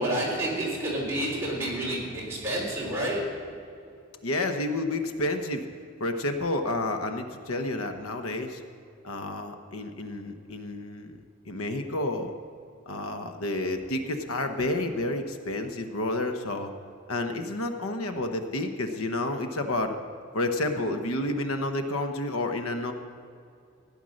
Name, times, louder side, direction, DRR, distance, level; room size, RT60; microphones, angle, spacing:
voice 1, 0.0-3.5, right 1 dB, 10° right, -5 dB, 3.8 m, -29 dB
voice 2, 4.2-5.7 6.0-8.6 9.0-11.2 11.4-12.3 12.9-16.7 17.1-20.0 20.3-22.9, left 2 dB, 85° left, 6 dB, 1.0 m, -30 dB
16.0 x 10.0 x 6.4 m, 2.5 s
head